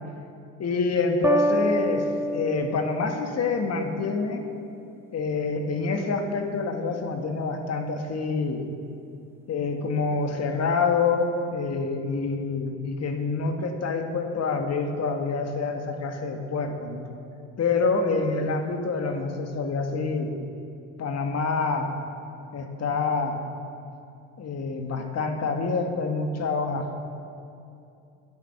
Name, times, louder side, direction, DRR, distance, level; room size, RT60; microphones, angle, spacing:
voice 1, 0.6-4.5 5.1-8.6 9.5-17.1 17.6-20.3 21.0-21.9 22.5-23.4 24.4-27.0, left 4 dB, 40° left, 4 dB, 2.0 m, -27 dB
sound 1, 1.2-4.1, right 1 dB, 5° right, 0.6 m, -27 dB
11.0 x 10.5 x 7.1 m, 2.6 s
hypercardioid pair, 65°, 38 cm